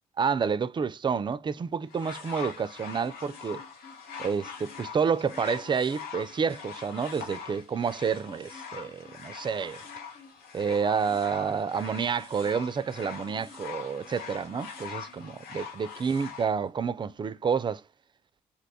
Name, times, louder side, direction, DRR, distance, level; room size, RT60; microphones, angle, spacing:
voice 1, 0.2-3.6 4.2-9.8 10.5-17.8, right 6 dB, 30° right, 0.3 m, -29 dB
sound 1, 1.9-16.5 17.4-17.5, left 6 dB, 80° left, 0.7 m, -43 dB
2.8 x 2.2 x 4.1 m
supercardioid pair, 55°, 15 cm